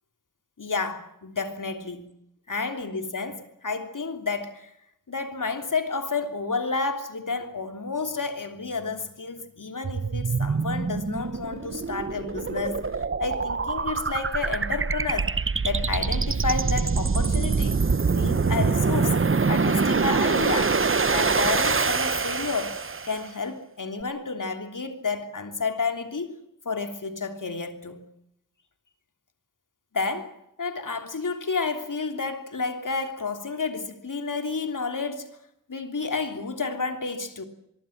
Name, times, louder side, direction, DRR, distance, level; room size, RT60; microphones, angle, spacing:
voice 1, 0.6-2.1 2.5-4.7 5.1-12.8 13.2-15.3 15.6-17.8 18.1-19.2 19.5-20.8 21.1-22.8 23.0-26.4 26.6-28.0 29.9-35.4 35.7-37.4, left 4 dB, 70° left, 3.3 m, -30 dB
sound 1, 9.8-23.2, right 4 dB, 40° right, 0.9 m, -25 dB
24.0 x 23.5 x 7.4 m
wide cardioid pair, 75°, 32 cm